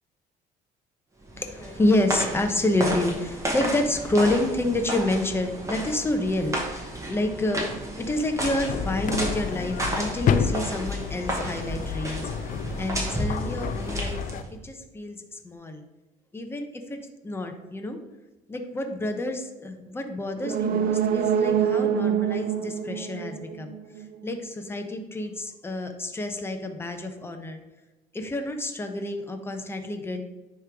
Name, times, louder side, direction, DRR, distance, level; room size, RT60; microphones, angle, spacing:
sound 1, 1.2-14.5, right 1 dB, 20° right, 1.3 m, -32 dB
voice 1, 1.4-7.7 8.0-14.2 14.5-15.8 16.3-18.0 18.5-23.8 24.2-27.6 28.1-30.2, left 1 dB, 15° left, 5 dB, 0.7 m, -28 dB
sound 2, 8.4-14.4, left 7 dB, 50° left, 0.4 m, -30 dB
sound 3, 20.4-24.1 24.4-24.5, right 9 dB, 60° right, 0.5 m, -25 dB
9.5 x 3.2 x 3.5 m, 1.1 s
cardioid pair, 110°, 17 cm